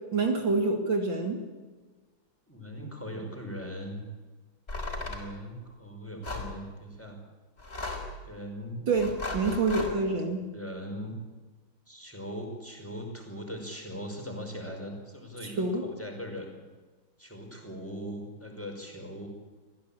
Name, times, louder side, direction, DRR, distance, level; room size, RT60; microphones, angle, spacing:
voice 1, 0.1-1.4 8.9-10.5 15.4-15.9, right 3 dB, 60° right, 4 dB, 3.0 m, -27 dB
voice 2, 2.5-4.0 5.0-7.2 8.2-8.8 9.8-10.2 10.5-11.2 11.9-16.6 17.2-19.3, equal, 5° left, 2 dB, 5.0 m, -40 dB
sound 1, 4.7-5.3 6.2-6.5 7.6-8.2 9.0-9.9, left 2 dB, 25° left, 4.6 m, -36 dB
25.5 x 16.0 x 8.7 m, 1.3 s
omnidirectional pair, 2.4 m